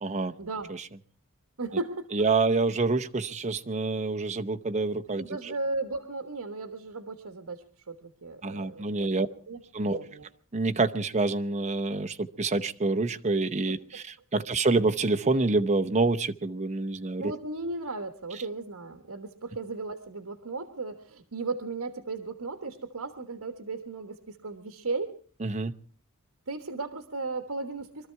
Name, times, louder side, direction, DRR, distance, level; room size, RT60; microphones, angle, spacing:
voice 1, 0.0-0.3 0.7-0.8 2.1-5.5 8.4-9.3 9.7-10.0 10.5-14.0 14.3-17.3 25.4-25.7, right 3 dB, 30° right, 7 dB, 0.8 m, -27 dB
voice 2, 1.6-2.3 5.2-10.3 17.2-25.1 26.5-28.1, right 3 dB, 75° right, 8 dB, 1.3 m, -36 dB
23.5 x 13.5 x 4.6 m, 0.43 s
head